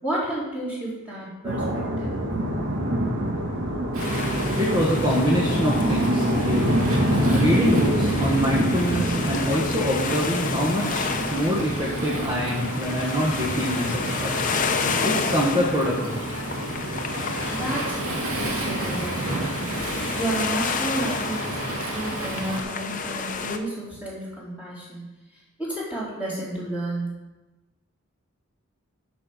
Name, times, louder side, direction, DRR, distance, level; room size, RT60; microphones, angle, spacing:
voice 1, 0.0-2.2 17.5-18.0 18.3-19.7 20.1-25.0 25.6-27.1, right 1 dB, 5° right, -8 dB, 3.9 m, -31 dB
sound 1, 1.4-20.3, equal, 60° right, 1.4 m, -27 dB
Waves surf, 3.9-22.6, right 2 dB, 90° right, 2.3 m, -32 dB
sound 2, 4.0-23.6, left 5 dB, 40° left, 0.7 m, -31 dB
voice 2, 4.5-6.8 7.3-14.3 15.0-16.2, equal, 25° right, -5 dB, 1.4 m, -25 dB
11.0 x 5.4 x 6.3 m, 1.1 s
head